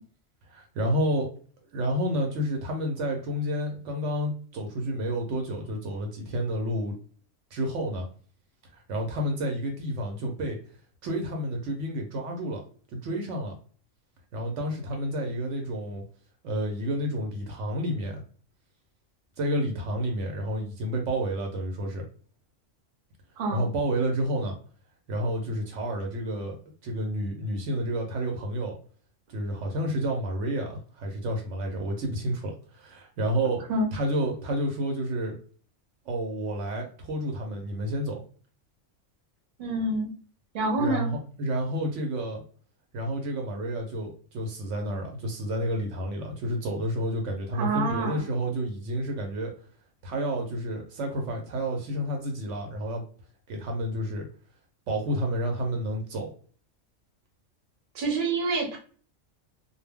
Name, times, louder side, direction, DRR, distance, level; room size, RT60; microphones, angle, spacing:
voice 1, 0.5-1.3 1.7-7.0 7.5-8.1 8.7-10.6 11.0-12.6 12.9-13.5 14.3-16.0 16.4-18.2 19.4-22.1 23.5-24.6 25.1-26.6 26.8-28.7 29.3-33.7 33.9-35.3 36.1-38.2 40.8-42.4 42.9-49.5 50.0-53.0 53.5-54.3 54.9-56.3, equal, 75° right, 2 dB, 0.9 m, -30 dB
voice 2, 23.4-23.7 33.7-33.9 39.6-40.1 40.5-41.1 47.6-48.2 57.9-58.8, right 2 dB, 50° right, 1 dB, 0.8 m, -27 dB
2.2 x 2.1 x 3.4 m, 0.43 s
omnidirectional pair, 1.3 m